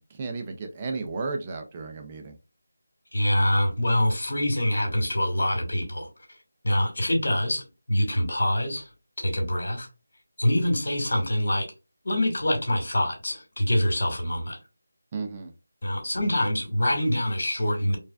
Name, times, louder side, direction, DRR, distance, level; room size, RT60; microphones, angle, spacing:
voice 1, 0.0-2.4 15.1-15.5, right 4 dB, 20° right, 0.5 m, -33 dB
voice 2, 3.1-6.1 6.6-8.9 9.2-9.9 10.4-11.7 12.0-14.6 15.8-18.0, left 1 dB, 70° left, 2.0 m, -25 dB
4.6 x 2.4 x 2.3 m
figure-of-eight pair, 175°, 0 cm